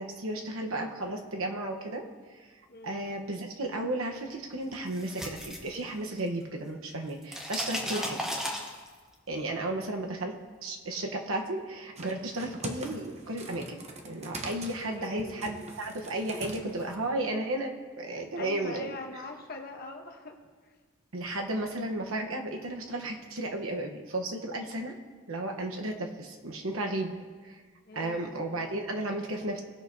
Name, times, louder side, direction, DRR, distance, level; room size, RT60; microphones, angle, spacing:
voice 1, 0.0-2.1 2.8-8.2 9.3-10.4 10.6-19.0 21.1-24.9 25.3-27.1 27.4-27.6 27.9-29.6, right 1 dB, 85° right, 2 dB, 1.1 m, -34 dB
voice 2, 2.7-3.0 7.9-8.2 14.9-15.5 18.4-20.4 27.9-28.3, left 2 dB, 45° left, 3 dB, 1.1 m, -42 dB
sound 1, 4.7-6.4 6.7-9.1, equal, 5° right, 1.0 m, -35 dB
sound 2, 12.0-17.1, right 2 dB, 30° right, 0.9 m, -43 dB
19.5 x 6.5 x 2.8 m, 1.5 s
head